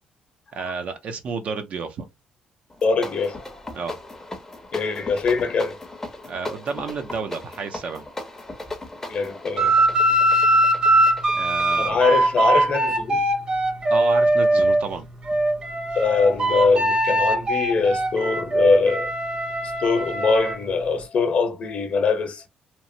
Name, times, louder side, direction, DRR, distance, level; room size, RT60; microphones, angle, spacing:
voice 1, 0.5-2.1 3.7-3.9 6.2-8.0 11.3-12.0 13.9-15.1, right 5 dB, 50° right, 0.5 m, -30 dB
sound 1, 2.7-13.0, left 2 dB, 15° left, 0.6 m, -37 dB
voice 2, 2.8-3.7 4.7-5.8 9.1-9.8 11.8-13.2 15.9-19.1 19.8-22.5, left 4 dB, 45° left, 0.8 m, -22 dB
sound 2, 9.6-14.8 15.3-20.6, right 1 dB, 30° right, 0.9 m, -21 dB
3.0 x 2.1 x 2.6 m
cardioid pair, 115°, 3 cm